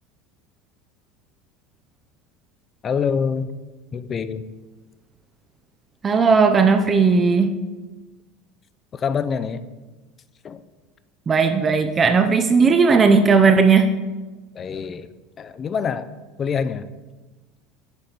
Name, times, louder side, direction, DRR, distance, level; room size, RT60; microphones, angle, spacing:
voice 1, 2.8-3.5 3.9-4.4 8.9-9.6 10.4-10.6 14.5-15.1 15.4-16.1 16.4-16.8, left 6 dB, 35° left, 13 dB, 0.4 m, -25 dB
voice 2, 6.0-7.6 11.3-13.9, right 5 dB, 30° right, 7 dB, 0.4 m, -16 dB
6.2 x 4.2 x 5.1 m, 1.2 s
hypercardioid pair, 80°, 0 cm